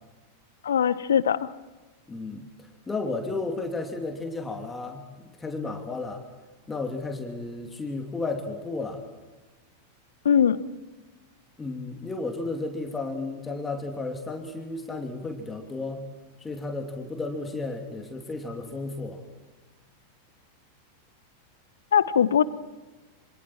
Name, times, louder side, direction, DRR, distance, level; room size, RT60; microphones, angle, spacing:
voice 1, 0.6-1.5 10.2-10.6 21.9-22.4, left 8 dB, 65° left, 17 dB, 1.0 m, -21 dB
voice 2, 2.1-2.5 2.9-5.0 5.4-6.2 6.7-9.0 11.6-16.0 16.4-19.2, left 3 dB, 15° left, 3 dB, 2.9 m, -33 dB
27.0 x 26.0 x 4.6 m, 1.2 s
figure-of-eight pair, 90°, 0 cm